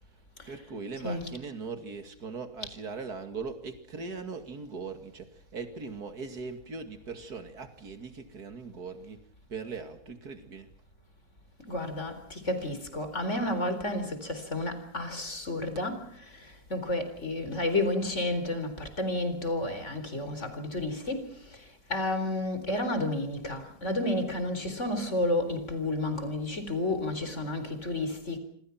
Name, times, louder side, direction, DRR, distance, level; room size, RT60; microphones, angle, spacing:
voice 1, 0.5-9.2 9.5-10.7, right 4 dB, 85° right, 2.9 m, -40 dB
voice 2, 11.7-16.0 16.3-21.3 21.9-28.4, left 1 dB, 50° left, 4.4 m, -31 dB
27.0 x 26.5 x 5.9 m
omnidirectional pair, 1.6 m